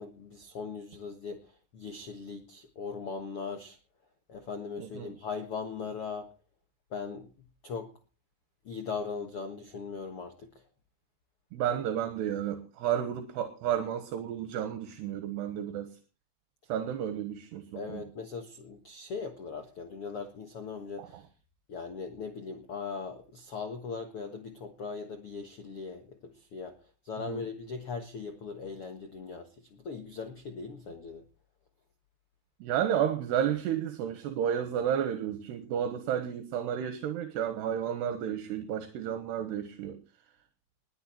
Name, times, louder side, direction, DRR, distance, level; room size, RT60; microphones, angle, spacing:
voice 1, 0.0-3.8 4.3-6.3 6.9-7.3 7.6-7.9 8.6-10.5 17.7-21.2 21.7-26.8 27.0-31.2, left 5 dB, 70° left, 1.3 m, -39 dB
voice 2, 4.8-5.1 11.5-15.9 16.7-18.0 21.0-21.1 27.3-27.4 32.6-40.0, right 9 dB, 75° right, 3.4 m, -32 dB
20.5 x 9.9 x 4.4 m
omnidirectional pair, 4.9 m